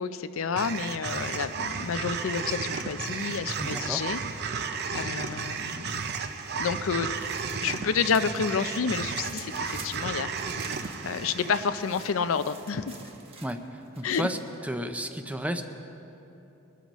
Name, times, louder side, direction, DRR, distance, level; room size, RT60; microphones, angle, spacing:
voice 1, 0.0-4.2 4.9-6.1 6.6-7.1 7.6-10.3 11.0-13.0 14.0-14.3, left 6 dB, 80° left, 11 dB, 0.5 m, -29 dB
sound 1, 0.5-12.9, right 5 dB, 55° right, 0.6 m, -34 dB
voice 2, 3.6-4.0 13.4-14.4 14.6-15.6, right 1 dB, 5° right, 7 dB, 0.5 m, -32 dB
sound 2, 6.3-8.4 8.8-14.6, right 4 dB, 30° right, 1.1 m, -48 dB
21.5 x 12.5 x 3.1 m, 2.9 s
head